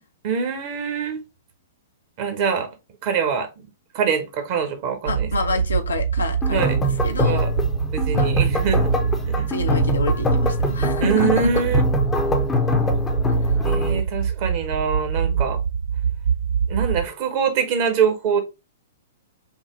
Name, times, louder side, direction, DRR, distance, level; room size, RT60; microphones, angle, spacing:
voice 1, 0.2-1.2 2.2-2.7 3.0-3.5 3.9-5.3 6.5-6.8 7.2-7.5 7.9-8.9 9.4-9.5 11.0-11.8 13.6-15.6 16.7-18.4, right 6 dB, 40° right, 1.1 m, -24 dB
voice 2, 5.1-7.5 8.1-8.3 9.5-11.5 15.2-15.5, left 4 dB, 70° left, 0.8 m, -28 dB
sound 1, 5.1-17.0, right 7 dB, 60° right, 0.4 m, -24 dB
sound 2, 6.4-14.0, left 2 dB, 15° left, 0.7 m, -24 dB
5.6 x 2.2 x 3.1 m
figure-of-eight pair, 110°, 0 cm